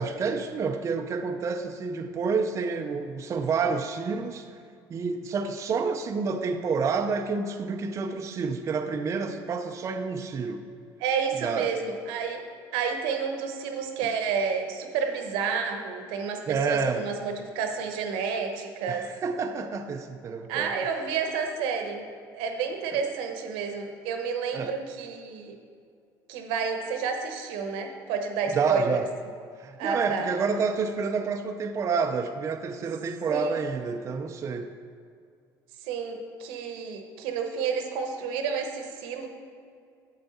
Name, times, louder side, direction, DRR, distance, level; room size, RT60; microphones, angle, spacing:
voice 1, 0.0-4.6 4.9-10.7 11.4-11.8 16.5-17.1 18.9-20.8 22.9-23.0 24.5-24.8 28.5-29.1 29.6-34.8, right 5 dB, 35° right, 0.5 m, -29 dB
voice 2, 11.0-12.4 12.7-19.1 20.5-25.6 26.3-29.0 29.8-30.3 33.3-33.6 35.8-39.3, right 6 dB, 85° right, 1.0 m, -30 dB
8.0 x 7.6 x 4.1 m
cardioid pair, 105°, 9 cm